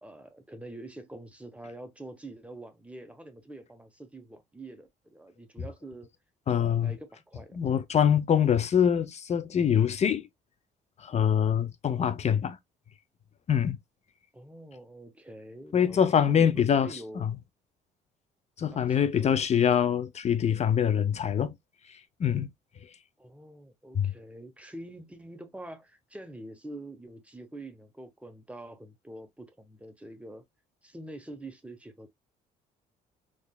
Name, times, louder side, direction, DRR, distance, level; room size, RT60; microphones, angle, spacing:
voice 1, 0.0-6.1 6.6-7.6 11.9-12.3 14.3-17.4 18.7-19.1 23.2-30.4 30.8-32.1, right 1 dB, 5° right, 1.1 m, -45 dB
voice 2, 6.5-7.0 7.5-10.3 11.0-12.6 13.5-13.8 15.7-16.9 17.2-17.3 18.6-21.5 22.2-22.5 23.9-24.1, left 8 dB, 40° left, 0.7 m, -24 dB
3.9 x 3.3 x 2.3 m
supercardioid pair, 80°, 17 cm